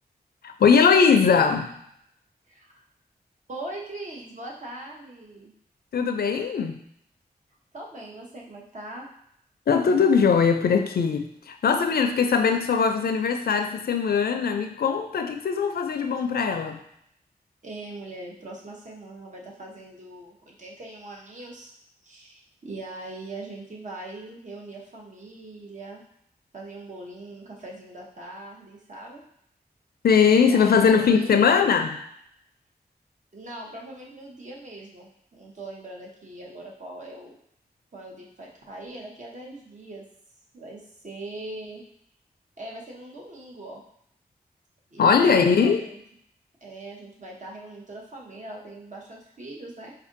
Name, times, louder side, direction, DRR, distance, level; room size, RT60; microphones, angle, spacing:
voice 1, 0.4-1.7 5.9-6.8 9.7-16.8 30.0-32.0 45.0-45.8, left 6 dB, 70° left, 6 dB, 0.4 m, -20 dB
voice 2, 2.5-2.8 3.5-5.5 7.7-9.1 17.6-21.7 22.0-26.0 26.5-29.2 30.4-31.3 33.3-37.4 37.9-40.1 40.5-41.8 42.6-43.8 44.9-46.0 46.6-49.9, right 2 dB, 50° right, -2 dB, 0.9 m, -41 dB
4.3 x 2.5 x 2.5 m, 0.72 s
wide cardioid pair, 70°, 17 cm